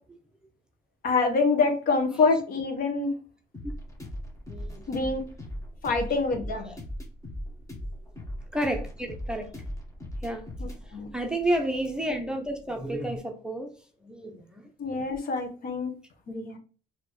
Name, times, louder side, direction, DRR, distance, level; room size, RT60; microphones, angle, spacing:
voice 1, 1.0-3.1 4.9-5.3 5.8-6.7 10.9-11.1 14.8-15.9 16.3-16.6, left 4 dB, 55° left, 4 dB, 1.1 m, -25 dB
sound 1, 3.5-13.2, equal, 20° left, 1.3 m, -39 dB
voice 2, 4.5-4.9 5.9-6.0 6.5-6.8 8.5-9.5 10.2-10.5 11.1-13.7 14.0-14.7, right 1 dB, 5° right, 4 dB, 0.6 m, -31 dB
4.2 x 2.8 x 3.1 m, 0.38 s
cardioid pair, 110°, 17 cm